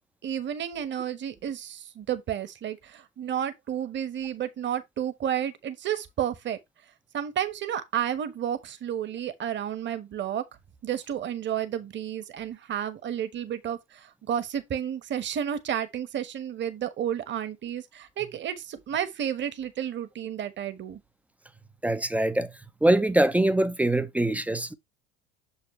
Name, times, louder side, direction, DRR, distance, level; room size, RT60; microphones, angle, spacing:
voice 1, 0.2-6.6 7.1-10.4 10.8-21.0, right 9 dB, 30° right, 1.3 m, -31 dB
voice 2, 21.8-22.5 22.8-24.7, right 1 dB, 5° right, 0.6 m, -23 dB
6.9 x 5.3 x 3.1 m
figure-of-eight pair, 75°, 35 cm